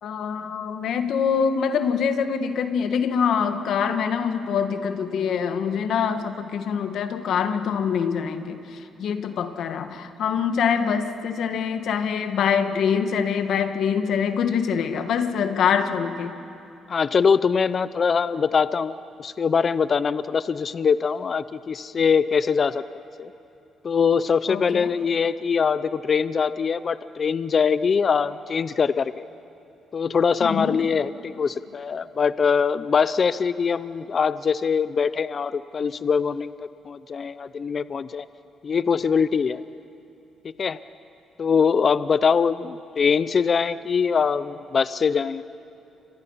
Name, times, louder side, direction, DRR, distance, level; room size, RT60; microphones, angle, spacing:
voice 1, 0.0-16.4 24.5-24.9 30.4-30.8, left 7 dB, 70° left, 8 dB, 1.6 m, -24 dB
voice 2, 16.9-22.8 23.2-23.3 23.8-29.3 29.9-36.5 36.9-38.3 38.6-39.6 40.6-40.8 41.4-45.4, left 6 dB, 45° left, 15 dB, 0.6 m, -22 dB
30.0 x 25.5 x 5.7 m, 2.8 s
cardioid pair, 90°, 0 cm